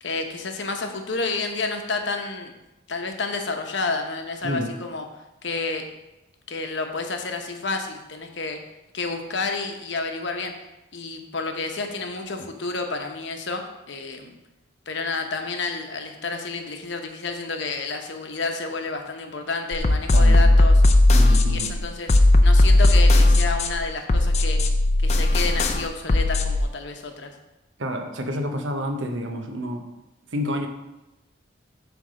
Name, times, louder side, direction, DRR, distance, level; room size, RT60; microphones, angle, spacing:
voice 1, 0.0-2.5 2.9-5.0 5.4-5.9 6.5-8.6 8.9-10.5 10.9-13.6 13.9-14.3 14.9-20.8 21.2-22.1 22.4-24.6 25.0-27.3, left 3 dB, 65° left, 5 dB, 0.9 m, -30 dB
voice 2, 4.4-4.7 20.1-20.5 21.1-21.7 27.8-29.9 30.3-30.7, equal, 75° right, 5 dB, 0.9 m, -29 dB
sound 1, 19.7-26.6, left 1 dB, 35° left, 0.5 m, -17 dB
7.9 x 3.4 x 6.2 m, 0.97 s
head